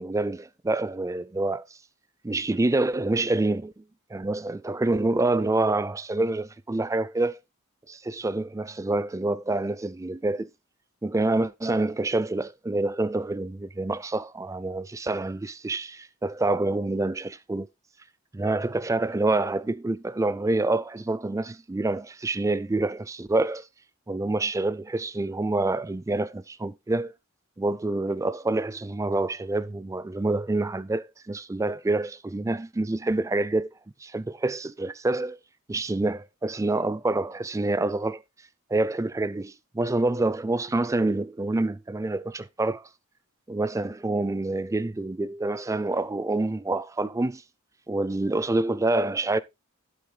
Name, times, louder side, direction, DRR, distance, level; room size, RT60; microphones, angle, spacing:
voice 1, 0.0-1.6 2.2-3.8 4.1-7.4 7.9-10.5 11.0-17.7 18.3-23.7 24.1-27.1 27.6-33.7 34.0-35.4 35.7-38.2 38.7-42.9 43.5-47.4 47.9-49.4, right 2 dB, 15° right, 0.4 m, -27 dB
11.0 x 8.4 x 2.2 m
head